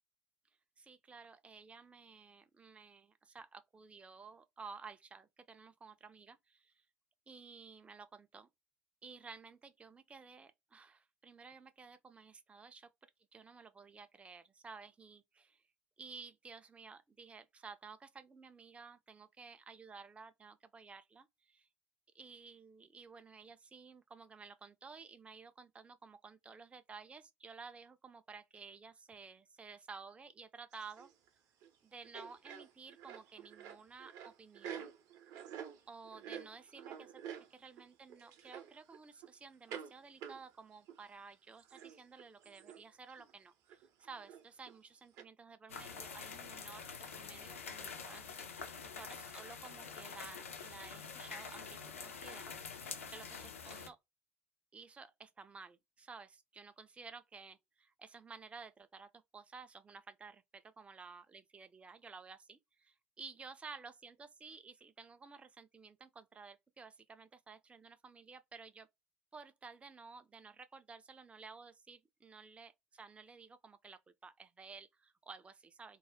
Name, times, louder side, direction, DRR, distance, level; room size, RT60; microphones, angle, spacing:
voice 1, 0.8-6.8 7.3-8.5 9.0-12.9 13.3-15.6 16.0-21.7 22.1-31.1 31.8-34.9 35.9-46.9 47.1-54.0 54.7-68.9 69.3-76.0, right 4 dB, 15° right, 0.4 m, -54 dB
sound 1, 30.7-31.3 31.6-31.8 32.0-37.8 38.1-39.3 39.7-39.9 40.2-41.0 41.3-41.4 41.6-42.8 43.1-43.3 43.7-44.8 45.2-45.3, right 8 dB, 55° right, 0.6 m, -49 dB
sound 2, 45.7-53.9, left 5 dB, 80° left, 0.5 m, -47 dB
2.3 x 2.1 x 3.4 m
figure-of-eight pair, 60°, 7 cm